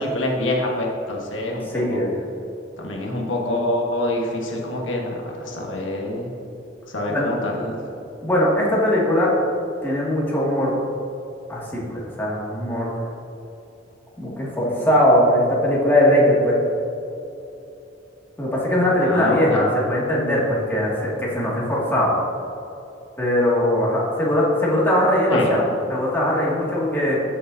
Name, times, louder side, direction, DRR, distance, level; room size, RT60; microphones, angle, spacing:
voice 1, 0.0-1.8 2.8-6.3 6.9-7.8 19.0-19.6 25.3-25.5, left 1 dB, 85° left, -1 dB, 1.3 m, -25 dB
voice 2, 1.6-2.2 7.1-7.3 8.2-9.3 9.8-10.7 11.5-13.0 14.2-16.6 18.4-22.1 23.2-25.6 25.9-27.2, left 1 dB, 10° left, -6 dB, 2.0 m, -20 dB
13.5 x 6.6 x 2.7 m, 2.8 s
head